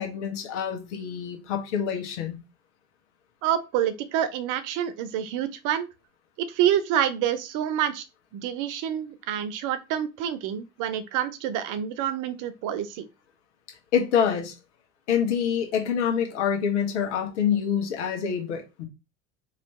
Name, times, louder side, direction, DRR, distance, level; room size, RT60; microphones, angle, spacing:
voice 1, 0.0-2.4 13.9-14.5 15.1-18.9, left 8 dB, 80° left, 1.4 m, -26 dB
voice 2, 3.4-5.9 6.4-8.0 8.3-13.1, right 10 dB, 60° right, 0.8 m, -27 dB
3.2 x 3.0 x 4.1 m
hypercardioid pair, 75°, 35 cm